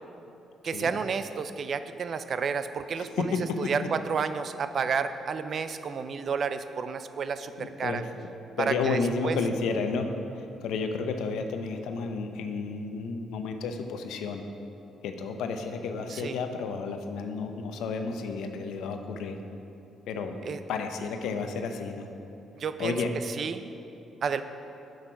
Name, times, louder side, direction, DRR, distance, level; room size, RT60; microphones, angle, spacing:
voice 1, 0.6-8.0 8.6-9.4 16.1-16.4 20.4-20.6 22.6-23.0 23.3-23.7 24.2-24.4, right 6 dB, 55° right, 11 dB, 0.5 m, -31 dB
voice 2, 7.6-8.0 8.6-10.1 10.4-14.4 15.0-19.4 20.1-20.4 20.7-22.1 22.8-23.1, left 4 dB, 85° left, 6 dB, 0.7 m, -32 dB
8.9 x 6.5 x 5.9 m, 2.9 s
cardioid pair, 90°, 0 cm